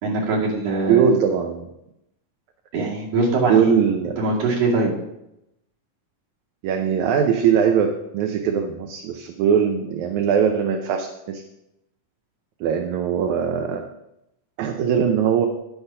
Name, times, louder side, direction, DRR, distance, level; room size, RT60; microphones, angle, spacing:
voice 1, 0.0-1.0 2.7-3.8 4.2-4.9, right 3 dB, 55° right, -4 dB, 3.3 m, -22 dB
voice 2, 0.9-1.7 3.5-4.4 6.6-11.4 12.6-13.8 14.6-15.5, right 7 dB, 75° right, 4 dB, 2.0 m, -21 dB
9.9 x 7.2 x 5.4 m, 0.87 s
omnidirectional pair, 3.6 m